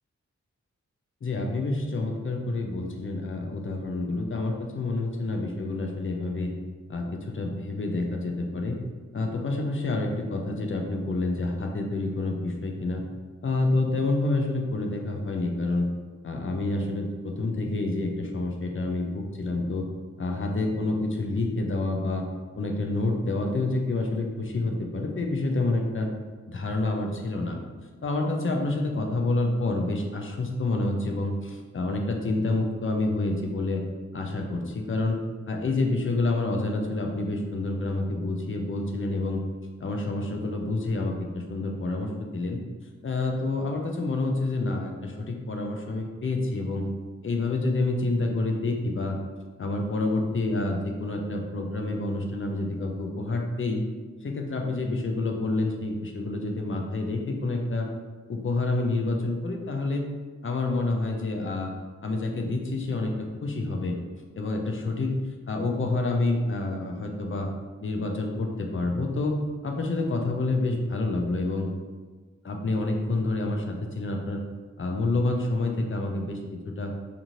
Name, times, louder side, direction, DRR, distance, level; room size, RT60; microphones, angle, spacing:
voice 1, 1.2-6.5 6.9-8.8 9.1-13.0 13.4-15.9 16.2-19.9 20.2-22.2 22.6-26.1 26.5-27.6 28.0-33.8 34.1-35.2 35.5-39.4 39.8-42.6 43.0-46.9 47.2-49.2 49.6-53.8 54.2-57.9 58.3-60.1 60.4-61.7 62.0-64.0 64.3-67.5 67.8-69.4 69.6-71.7 72.4-74.4 74.8-76.9, left 2 dB, 45° left, 2 dB, 0.5 m, -28 dB
2.6 x 2.5 x 3.0 m, 1.4 s
wide cardioid pair, 65°, 29 cm